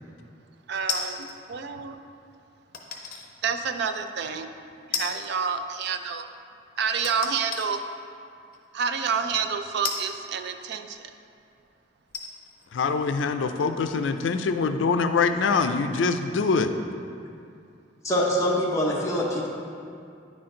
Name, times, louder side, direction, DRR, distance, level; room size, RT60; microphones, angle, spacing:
voice 1, 0.7-2.0 3.4-4.5 4.9-6.3 6.8-7.8 8.7-11.0, right 6 dB, 65° right, 8 dB, 0.4 m, -28 dB
sound 1, 0.9-1.4 2.7-3.3 3.8-3.9 4.9-5.4 5.7-5.8 7.0-7.7 8.5-8.6 9.8-10.9 11.6-11.7 12.1-14.5 14.8-14.9, left 5 dB, 55° left, 0.8 m, -34 dB
voice 2, 12.7-16.7, left 4 dB, 85° left, 8 dB, 0.4 m, -24 dB
voice 3, 18.0-19.5, equal, 15° left, -4 dB, 0.8 m, -24 dB
9.7 x 4.4 x 3.7 m, 2.4 s
head